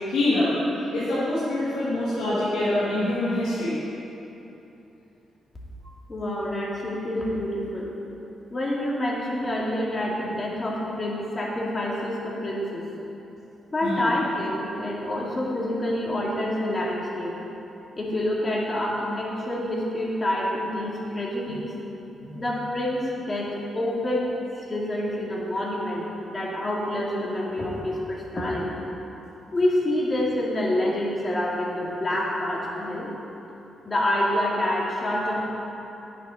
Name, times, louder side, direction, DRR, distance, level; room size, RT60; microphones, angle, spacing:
voice 1, 0.1-0.5 0.9-3.8 13.8-14.0 22.2-22.4, left 1 dB, 80° left, -10 dB, 2.4 m, -25 dB
voice 2, 6.1-7.9 8.5-12.8 13.7-17.3 18.0-21.7 22.3-28.8 29.5-33.1 33.9-35.5, left 1 dB, 30° left, -4 dB, 2.4 m, -27 dB
9.7 x 7.3 x 5.5 m, 3.0 s
cardioid pair, 85°, 0 cm